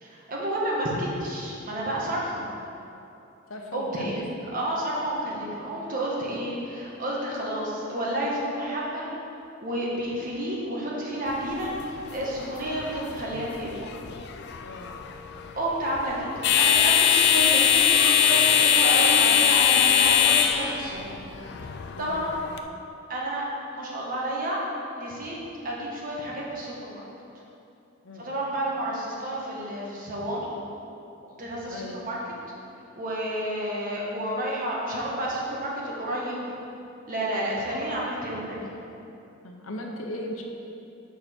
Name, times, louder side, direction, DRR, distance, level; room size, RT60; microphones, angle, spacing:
voice 1, 0.0-2.5 3.7-4.2 4.5-9.1 9.6-13.7 15.6-21.2 22.0-22.3 23.1-23.4 23.7-24.6 25.0-25.4 25.6-27.0 28.2-30.5 31.4-32.2 32.9-36.4 37.1-38.6, right 1 dB, 45° right, -4 dB, 1.4 m, -30 dB
voice 2, 3.5-4.3 5.5-5.6 14.6-15.0 21.9-22.3 28.0-28.3 31.7-32.0 37.7-38.2 39.4-40.4, left 1 dB, 75° left, 1 dB, 0.9 m, -38 dB
sound 1, 11.3-22.6, left 8 dB, 55° left, 0.4 m, -22 dB
6.8 x 5.9 x 4.4 m, 2.8 s
head